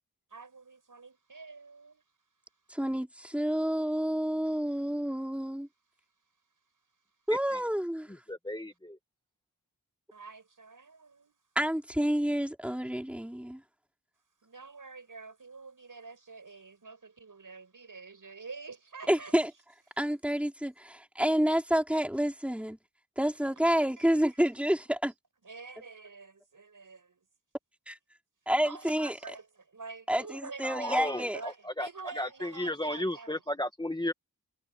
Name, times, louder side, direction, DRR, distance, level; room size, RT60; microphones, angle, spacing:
voice 1, 0.3-2.0 10.1-11.4 14.4-19.4 24.0-24.4 25.4-27.2 28.6-33.4, right 4 dB, 65° right, 6.2 m, -47 dB
voice 2, 2.7-5.7 7.3-8.1 11.6-13.6 19.1-19.5 20.0-22.8 23.2-25.1 27.9-28.0 28.5-29.2 30.1-31.4, equal, 5° right, 4.0 m, -29 dB
voice 3, 8.3-9.0 30.6-31.9 32.2-34.1, left 1 dB, 10° left, 1.7 m, -34 dB
wide cardioid pair, 70°, 35 cm